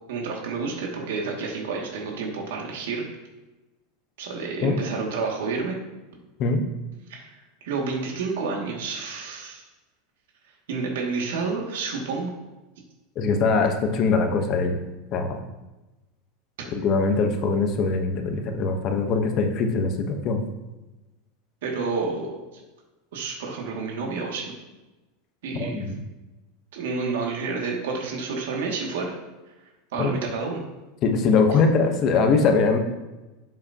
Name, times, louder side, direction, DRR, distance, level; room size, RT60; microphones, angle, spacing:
voice 1, 0.1-3.0 4.2-5.8 7.1-9.7 10.7-12.3 16.6-16.7 21.6-22.4 23.1-24.5 25.4-25.8 26.7-29.2 29.9-30.6, right 4 dB, 80° right, -1 dB, 2.2 m, -29 dB
voice 2, 13.2-14.8 15.1-15.4 16.7-20.4 25.6-26.0 30.0-30.1 31.0-32.8, left 4 dB, 30° left, 5 dB, 1.0 m, -22 dB
12.0 x 7.6 x 2.9 m, 1.1 s
supercardioid pair, 175°, 0 cm